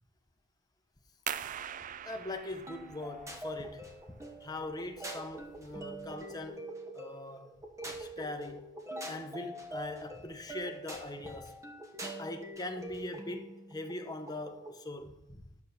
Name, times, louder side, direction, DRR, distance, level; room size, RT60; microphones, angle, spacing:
sound 1, 1.3-6.6, right 9 dB, 40° right, 0.3 m, -44 dB
voice 1, 2.0-6.7 6.9-7.5 7.9-8.7 9.1-11.6 12.2-15.4, left 2 dB, 20° left, 0.9 m, -41 dB
sound 2, 2.7-14.8, right 1 dB, 15° right, 1.0 m, -45 dB
9.3 x 5.9 x 6.7 m
head